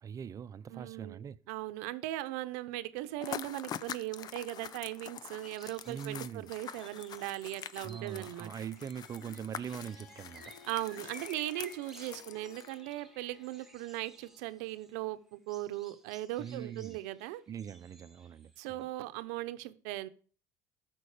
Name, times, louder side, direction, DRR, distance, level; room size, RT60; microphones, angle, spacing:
voice 1, 0.0-1.4 5.9-6.5 7.8-10.5 16.4-17.0 17.5-18.9, right 8 dB, 40° right, 0.7 m, -42 dB
voice 2, 0.7-8.5 10.6-17.4 18.6-20.1, right 16 dB, 80° right, 0.9 m, -39 dB
sound 1, 3.2-12.9, left 9 dB, 50° left, 0.7 m, -45 dB
sound 2, 5.4-6.1 6.5-14.9 15.3-19.0, right 2 dB, 5° right, 1.4 m, -57 dB
Harp, 9.6-15.0, left 6 dB, 75° left, 1.2 m, -57 dB
13.5 x 6.2 x 5.0 m
supercardioid pair, 80°, 9 cm